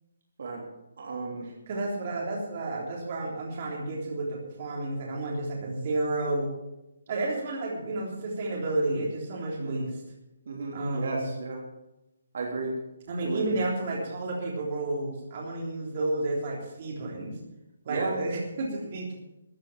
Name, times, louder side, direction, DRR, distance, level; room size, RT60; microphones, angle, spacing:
voice 1, 1.0-1.5 9.6-9.9 10.4-11.6 12.3-12.8 13.2-13.6 17.9-18.2, right 3 dB, 50° right, 0 dB, 3.1 m, -33 dB
voice 2, 1.7-6.5 7.1-10.0 10.7-11.3 13.1-17.4 17.8-19.2, right 2 dB, 30° right, -2 dB, 3.4 m, -31 dB
14.5 x 9.2 x 7.1 m, 0.92 s
hypercardioid pair, 175°, 0 cm